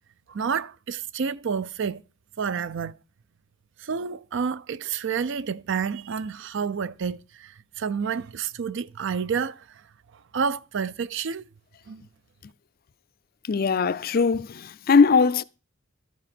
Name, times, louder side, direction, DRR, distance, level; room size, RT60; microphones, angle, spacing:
voice 1, 0.3-2.0 2.4-3.0 3.8-9.6 10.3-11.5 11.9-12.0, right 6 dB, 60° right, 0.5 m, -29 dB
voice 2, 13.5-15.4, left 5 dB, 45° left, 0.4 m, -20 dB
12.5 x 6.3 x 6.0 m
head